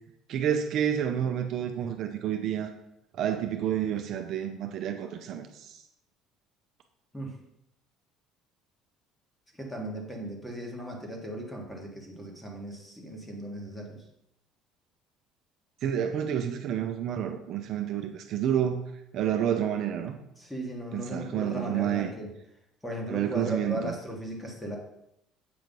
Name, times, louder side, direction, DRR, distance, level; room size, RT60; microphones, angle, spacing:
voice 1, 0.3-2.7 3.1-5.8 15.8-18.8 19.1-20.2 20.9-22.1 23.1-23.9, right 9 dB, 55° right, 5 dB, 0.6 m, -29 dB
voice 2, 9.5-14.0 20.4-22.3 22.8-24.8, equal, 5° left, 0 dB, 1.4 m, -37 dB
7.7 x 3.1 x 5.3 m, 0.82 s
cardioid pair, 130°, 0 cm